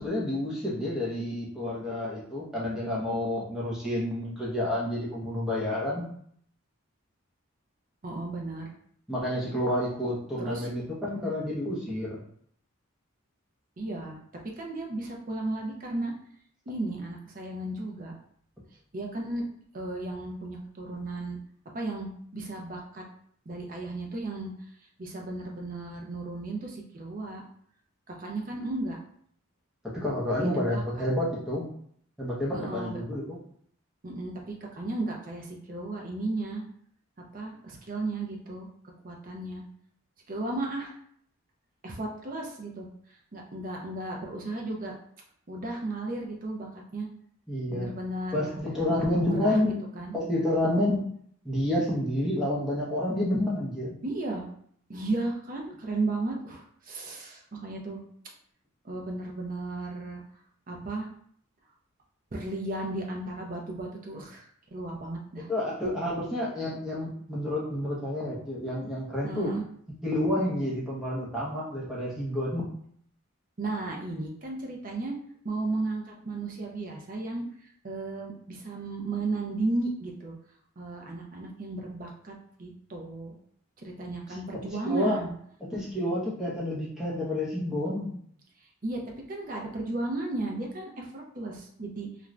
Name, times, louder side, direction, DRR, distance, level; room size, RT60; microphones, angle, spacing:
voice 1, 0.0-6.1 9.1-12.2 29.8-31.7 32.2-33.4 47.5-47.9 48.3-49.8 50.1-51.1 51.4-53.9 65.5-69.5 70.0-72.7 84.5-85.2 85.6-88.1, left 1 dB, 5° right, -6 dB, 0.7 m, -29 dB
voice 2, 8.0-8.7 10.4-10.7 13.8-14.2 14.6-16.1 16.7-18.1 18.9-19.4 19.7-21.4 21.7-23.0 23.5-24.5 25.0-27.4 28.1-29.0 30.4-31.0 32.5-33.0 34.0-36.6 37.3-38.7 39.0-39.6 40.3-41.0 41.8-42.9 43.3-44.9 45.5-47.1 47.7-48.5 49.0-50.2 54.0-54.5 54.9-58.0 58.8-60.2 60.7-61.1 62.3-65.5 69.2-69.6 73.6-75.2 75.4-80.3 80.8-83.4 83.8-85.4 88.8-89.0 89.3-92.1, right 2 dB, 40° right, 0 dB, 0.5 m, -34 dB
2.5 x 2.3 x 3.1 m, 0.63 s
head